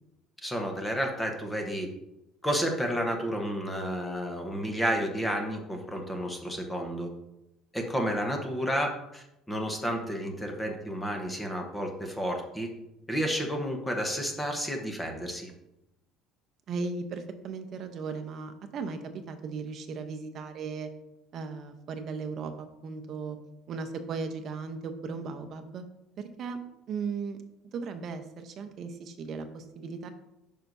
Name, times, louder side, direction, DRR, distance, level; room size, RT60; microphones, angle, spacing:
voice 1, 0.4-1.9 2.4-7.1 7.7-12.7 13.1-15.5, equal, 5° left, 2 dB, 0.9 m, -31 dB
voice 2, 16.7-20.9 21.3-23.4 23.7-25.8 26.2-26.6 26.9-27.4 27.7-30.1, right 4 dB, 40° right, 7 dB, 0.7 m, -37 dB
9.2 x 5.5 x 2.6 m, 0.88 s
cardioid pair, 165°, 0 cm